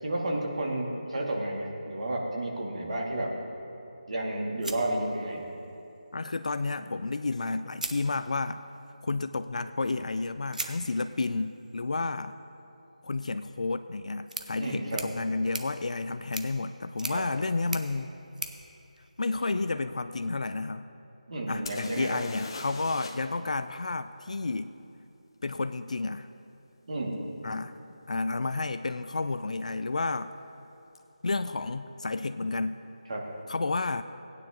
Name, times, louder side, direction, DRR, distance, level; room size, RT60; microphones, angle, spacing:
voice 1, 0.0-3.3 4.1-5.5 14.6-15.0 17.1-17.2 21.3-22.2 26.9-27.2 33.1-33.2, right 1 dB, 55° right, -1 dB, 2.2 m, -31 dB
sound 1, 4.6-5.7 7.1-7.2 7.7-8.7 10.5-19.7, right 2 dB, 85° right, 1.1 m, -42 dB
voice 2, 6.1-8.6 9.0-12.4 13.0-18.1 19.2-20.9 21.5-24.7 25.4-26.3 27.4-27.7 28.1-30.3 31.2-32.8 33.5-34.0, left 3 dB, 60° left, 11 dB, 0.4 m, -31 dB
sound 2, 21.7-23.4 23.6-23.7 27.1-27.2 27.9-28.1 28.3-28.9 31.0-31.1 31.3-31.4, left 3 dB, 35° left, 0.9 m, -43 dB
18.0 x 9.6 x 3.0 m, 2.8 s
figure-of-eight pair, 165°, 4 cm